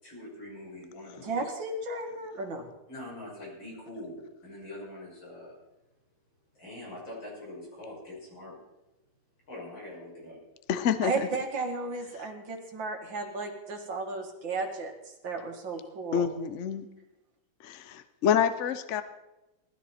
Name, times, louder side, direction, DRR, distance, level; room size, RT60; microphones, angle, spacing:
voice 1, 0.0-1.5 2.9-5.5 6.6-8.6 9.5-10.4, left 1 dB, 75° left, -5 dB, 7.2 m, -43 dB
voice 2, 1.2-2.7 11.0-14.9 15.2-16.3, right 3 dB, 70° right, 3 dB, 2.6 m, -34 dB
voice 3, 10.7-11.3 12.1-12.3 16.1-16.9 17.6-19.0, left 8 dB, 60° left, 11 dB, 0.8 m, -27 dB
19.0 x 13.0 x 4.3 m, 0.97 s
omnidirectional pair, 2.1 m